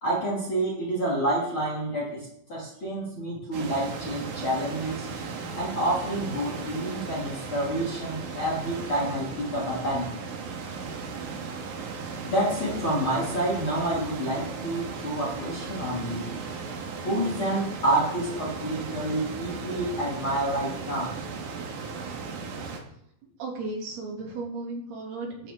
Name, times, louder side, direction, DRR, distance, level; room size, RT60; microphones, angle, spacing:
voice 1, 0.0-5.1 5.5-10.1 12.3-16.4 17.0-21.2, right 1 dB, 35° left, -3 dB, 3.1 m, -28 dB
sound 1, 3.5-22.8, right 5 dB, 60° right, 2.8 m, -36 dB
voice 2, 23.4-25.5, right 3 dB, 80° right, -1 dB, 4.9 m, -35 dB
14.0 x 13.0 x 3.8 m, 0.73 s
omnidirectional pair, 4.5 m